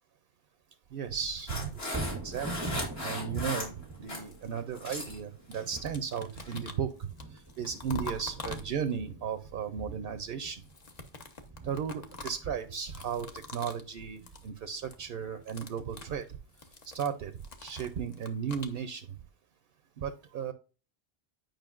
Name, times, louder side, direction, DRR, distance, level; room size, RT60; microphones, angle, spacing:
voice 1, 0.9-1.7 2.2-2.8 3.0-3.7 4.0-10.6 11.6-16.3 16.8-17.3 17.6-19.1 20.0-20.5, right 7 dB, 65° right, 10 dB, 0.8 m, -35 dB
sound 1, 1.1-2.7 3.6-5.2 5.5-9.1 10.6-13.9 14.2-14.5 14.8-15.1 15.4-18.8, left 3 dB, 40° left, 0.9 m, -46 dB
sound 2, 1.5-4.3 4.6-5.2 5.5-5.8 6.4-6.6, left 1 dB, 65° left, 2.3 m, -38 dB
Thunder, 1.8-16.0 16.5-16.6, right 2 dB, 25° right, 0.4 m, -43 dB
9.0 x 5.2 x 2.4 m, 0.34 s
omnidirectional pair, 1.1 m